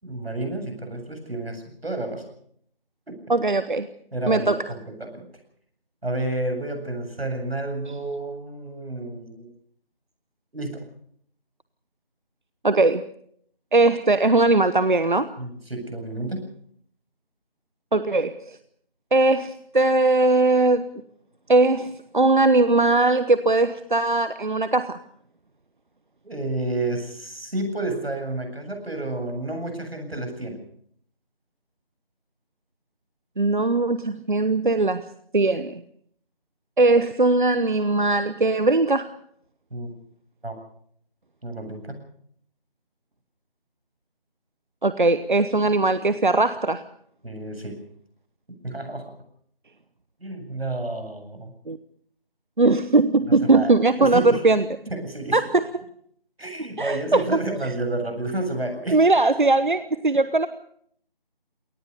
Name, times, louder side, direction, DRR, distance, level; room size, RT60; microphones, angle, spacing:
voice 1, 0.0-2.3 3.1-3.2 4.1-5.1 6.0-9.5 10.5-10.9 15.4-16.5 26.2-30.6 39.7-40.0 40.4-40.6 41.4-42.0 47.2-47.7 48.6-49.1 50.2-51.5 53.4-53.7 54.0-54.4 54.9-55.4 56.4-59.0, right 2 dB, 85° right, 5 dB, 7.9 m, -30 dB
voice 2, 3.3-3.9 4.3-4.6 12.6-13.0 13.7-15.3 17.9-18.6 19.1-20.9 21.5-25.0 33.4-35.1 35.3-35.8 36.8-39.1 44.8-46.8 51.7-51.8 52.6-54.6 55.3-55.7 56.8-57.7 58.9-60.5, right 2 dB, 55° right, 13 dB, 0.9 m, -20 dB
23.0 x 18.5 x 6.7 m, 0.66 s
figure-of-eight pair, 175°, 30 cm